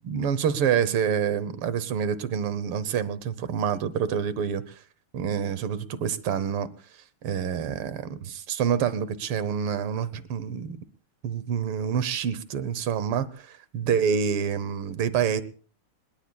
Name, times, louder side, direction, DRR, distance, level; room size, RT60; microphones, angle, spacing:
voice 1, 0.0-4.8 5.1-6.7 7.2-10.8 11.2-15.4, right 7 dB, 90° right, 15 dB, 2.0 m, -27 dB
27.0 x 21.5 x 2.3 m, 0.40 s
omnidirectional pair, 2.3 m